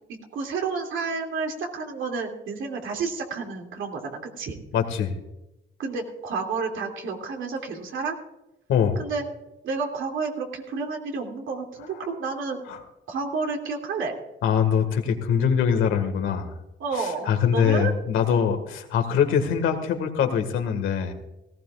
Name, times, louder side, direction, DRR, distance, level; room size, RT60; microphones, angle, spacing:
voice 1, 0.1-4.6 5.8-8.1 9.0-9.2 9.6-12.6 13.1-14.1 16.8-17.9, right 4 dB, 80° right, 2 dB, 2.7 m, -30 dB
voice 2, 4.7-5.1 8.7-9.0 12.7-12.8 14.4-16.5 17.0-21.1, left 7 dB, 85° left, 6 dB, 1.9 m, -23 dB
18.0 x 15.5 x 2.5 m, 0.93 s
cardioid pair, 90°, 20 cm